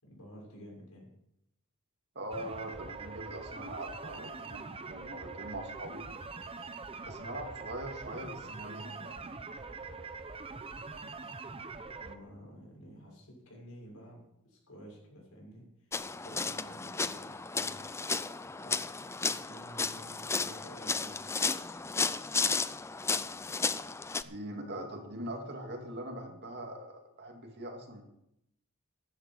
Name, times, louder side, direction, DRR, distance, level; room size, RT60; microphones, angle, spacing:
voice 1, 0.0-1.1 12.0-15.7 16.2-17.9 18.6-21.2, equal, 80° left, -2 dB, 6.5 m, -51 dB
voice 2, 2.2-6.1 7.0-9.4 9.8-9.9 24.2-28.0, right 1 dB, 50° right, 3 dB, 2.3 m, -42 dB
sound 1, 2.3-12.2, right 4 dB, 25° right, 0.8 m, -43 dB
sound 2, 15.9-24.2, left 4 dB, 10° left, 0.4 m, -33 dB
14.5 x 11.0 x 4.6 m, 0.79 s
head